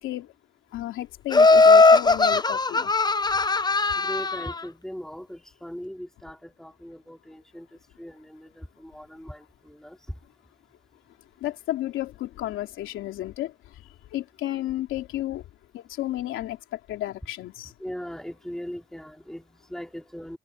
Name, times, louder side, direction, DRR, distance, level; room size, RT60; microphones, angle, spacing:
voice 1, 0.7-2.9 11.4-13.5 14.1-15.4 15.7-17.7, left 14 dB, 90° left, 3.1 m, -32 dB
Laughter, 1.3-4.5, left 3 dB, 20° left, 0.9 m, -18 dB
voice 2, 4.0-10.2 17.6-20.4, equal, ahead, 3.6 m, -39 dB
cardioid pair, 90°, 20 cm